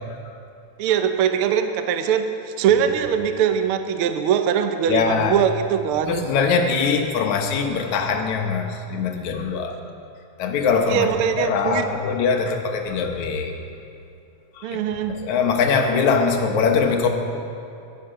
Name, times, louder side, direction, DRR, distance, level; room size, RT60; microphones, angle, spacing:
voice 1, 0.8-6.3 10.9-11.8 14.6-15.2, right 8 dB, 75° right, 7 dB, 1.3 m, -22 dB
voice 2, 4.9-5.4 6.0-9.8 10.4-11.1 11.4-13.6 14.6-14.8 15.1-17.1, left 5 dB, 75° left, 4 dB, 2.4 m, -22 dB
17.0 x 11.5 x 5.0 m, 2.6 s
omnidirectional pair, 3.4 m